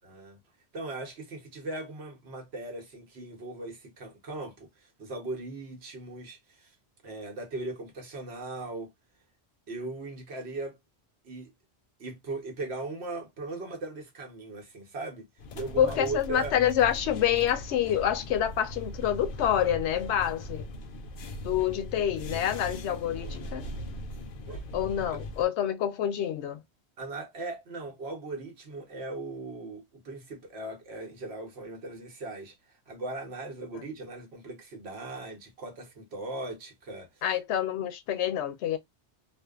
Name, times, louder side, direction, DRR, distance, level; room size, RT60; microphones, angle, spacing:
voice 1, 0.0-0.4 0.7-6.7 7.0-8.9 9.7-10.8 11.2-11.5 12.0-15.2 15.5-16.5 24.5-24.6 25.1-25.2 27.0-32.5 32.9-37.2, right 2 dB, 70° right, 1.2 m, -38 dB
sound 1, 15.4-25.5, left 1 dB, 60° left, 0.6 m, -40 dB
voice 2, 15.8-20.7 21.4-23.7 24.7-26.6 37.2-38.8, left 10 dB, 90° left, 0.9 m, -27 dB
2.6 x 2.3 x 2.3 m
omnidirectional pair, 1.1 m